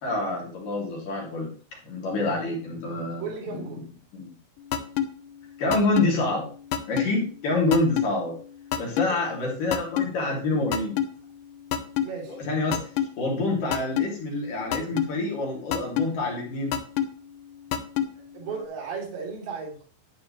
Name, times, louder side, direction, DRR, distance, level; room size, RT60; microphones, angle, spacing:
voice 1, 0.0-1.5 1.8-3.6 4.1-4.3 5.6-6.5 6.9-8.3 8.8-11.0 12.3-12.9 13.2-16.7, left 2 dB, 50° left, -2 dB, 4.1 m, -27 dB
voice 2, 3.2-3.8 9.1-9.2 12.0-12.4 18.2-19.9, right 5 dB, 65° right, -3 dB, 5.3 m, -35 dB
sound 1, 4.7-5.1 5.7-6.1 6.7-7.1 7.7-8.1 8.7-9.1 9.7-10.1 10.7-11.1 11.7-12.1 12.7-13.1 13.7-14.1 14.7-15.1 15.7-16.1 16.7-17.1 17.7-18.1, left 10 dB, 75° left, 2.7 m, -24 dB
11.5 x 10.0 x 3.2 m, 0.41 s
omnidirectional pair, 5.5 m